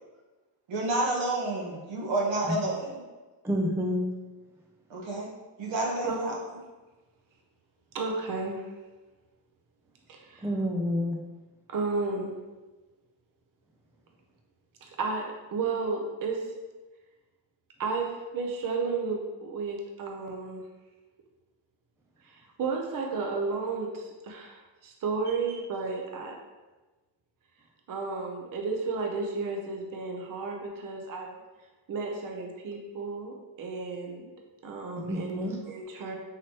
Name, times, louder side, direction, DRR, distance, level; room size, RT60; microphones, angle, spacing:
voice 1, 0.7-3.0 4.9-5.3 5.6-6.3, right 2 dB, 70° right, -3 dB, 1.3 m, -29 dB
voice 2, 3.4-4.1 10.4-11.2 35.0-35.6, left 1 dB, 5° right, 1 dB, 0.3 m, -28 dB
voice 3, 7.9-8.6 10.1-10.5 11.7-12.3 14.8-16.5 17.8-20.6 22.2-26.4 27.9-31.4 31.9-34.3 34.6-36.2, right 4 dB, 45° right, 2 dB, 0.8 m, -33 dB
5.9 x 3.0 x 2.9 m, 1.2 s
cardioid pair, 115°, 48 cm